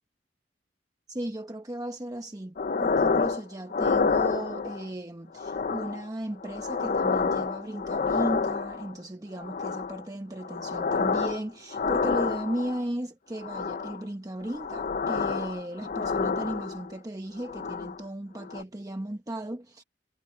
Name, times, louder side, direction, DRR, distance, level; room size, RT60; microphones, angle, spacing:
voice 1, 1.1-2.6 2.8-19.8, right 1 dB, 20° right, 0.9 m, -35 dB
sound 1, 2.6-3.4 3.7-4.9 5.4-6.0 6.4-8.9 9.4-10.0 10.4-11.4 11.7-12.8 13.4-14.0 14.5-17.0 17.4-18.0 18.4-18.6, left 5 dB, 45° left, 0.6 m, -28 dB
head